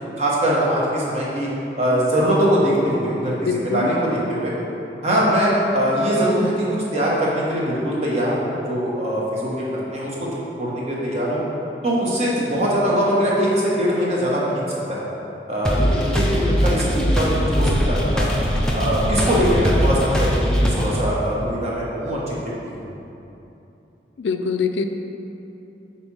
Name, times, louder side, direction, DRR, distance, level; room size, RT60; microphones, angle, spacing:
voice 1, 0.2-4.5 5.0-9.6 9.9-11.4 11.8-14.6 14.9-15.1 15.5-18.3 18.7-22.4 22.8-22.9, equal, 35° right, -6 dB, 1.2 m, -22 dB
voice 2, 3.4-3.9 24.2-24.8, left 5 dB, 85° left, 6 dB, 0.4 m, -23 dB
sound 1, 15.6-21.0, equal, 5° left, 0.5 m, -21 dB
5.2 x 4.3 x 6.1 m, 2.9 s
head